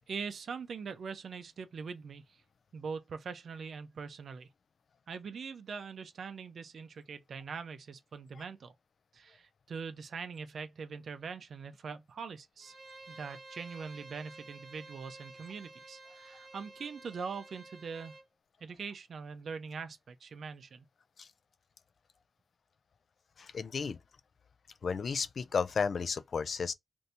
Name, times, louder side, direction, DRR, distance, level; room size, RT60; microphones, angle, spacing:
voice 1, 0.1-2.4 2.7-4.5 5.1-8.7 9.1-12.7 13.1-18.2 18.6-20.8, right 5 dB, 85° right, 0.5 m, -42 dB
Bowed string instrument, 12.6-18.3, right 2 dB, 50° right, 0.7 m, -52 dB
voice 2, 23.4-24.0 24.8-26.7, left 5 dB, 70° left, 0.3 m, -33 dB
2.7 x 2.6 x 3.3 m
wide cardioid pair, 120°, 0 cm